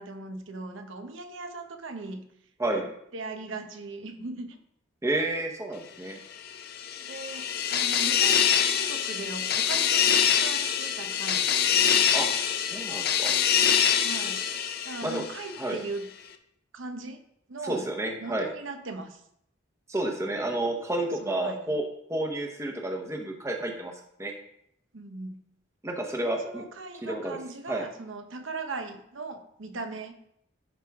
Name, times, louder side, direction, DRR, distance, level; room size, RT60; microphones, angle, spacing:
voice 1, 0.0-2.3 2.7-2.8 3.1-4.6 7.0-12.0 14.0-14.4 14.8-16.1 16.7-17.2 17.5-17.9 18.2-19.2 21.2-21.7 24.9-25.4 26.3-30.1, right 3 dB, 75° right, 6 dB, 0.9 m, -39 dB
voice 2, 5.0-6.2 12.1-12.3 12.7-13.3 15.0-15.2 15.6-15.8 17.6-18.5 19.9-21.8 22.1-23.9 24.2-24.3 25.8-26.6 27.0-27.4 27.7-27.8, right 1 dB, 15° right, 1 dB, 0.9 m, -30 dB
sound 1, 6.5-15.6, left 8 dB, 50° left, 0.6 m, -25 dB
11.0 x 4.6 x 3.5 m, 0.74 s
head